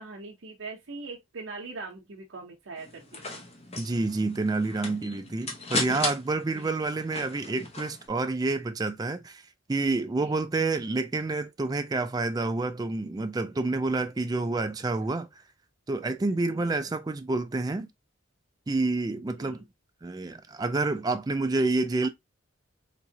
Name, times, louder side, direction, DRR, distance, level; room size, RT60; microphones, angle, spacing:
voice 1, 0.0-3.4 6.5-6.8 10.2-10.4 15.0-15.1 16.5-16.7 19.3-19.6, right 3 dB, 70° right, 0.7 m, -42 dB
sound 1, 2.8-8.1, left 2 dB, 30° left, 0.8 m, -36 dB
voice 2, 3.7-9.4 9.7-15.3 15.9-17.9 18.7-19.6 20.0-22.1, right 3 dB, 20° right, 0.3 m, -28 dB
3.6 x 3.0 x 2.7 m
head